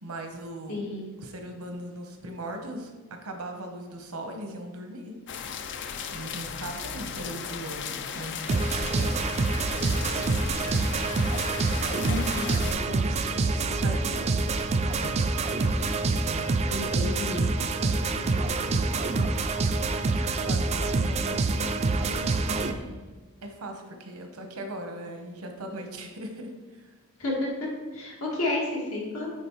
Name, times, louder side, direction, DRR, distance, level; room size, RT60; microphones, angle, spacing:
voice 1, 0.0-0.8 1.2-5.1 6.1-9.2 9.8-10.1 10.5-11.1 11.7-14.5 16.0-16.6 16.9-17.0 17.8-19.4 20.4-23.0 23.4-26.9, right 1 dB, 80° right, 4 dB, 1.0 m, -40 dB
voice 2, 0.7-1.1 12.0-12.5 16.7-17.4 27.2-29.3, left 2 dB, 75° left, -3 dB, 1.7 m, -31 dB
sound 1, 5.3-12.7, left 6 dB, 55° left, 0.4 m, -36 dB
sound 2, 8.5-22.7, right 3 dB, 30° right, 0.3 m, -26 dB
9.1 x 3.9 x 3.1 m, 1.3 s
head